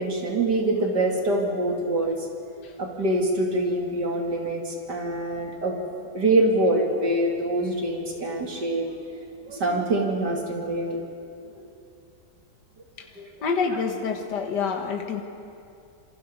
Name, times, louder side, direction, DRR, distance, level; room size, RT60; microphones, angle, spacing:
voice 1, 0.0-2.2 2.8-5.8 6.1-8.9 9.4-11.0 13.2-13.3, right 1 dB, 70° right, 1 dB, 2.9 m, -25 dB
voice 2, 13.4-15.2, left 5 dB, 75° left, 3 dB, 2.1 m, -27 dB
27.5 x 24.0 x 5.4 m, 2.6 s
omnidirectional pair, 1.9 m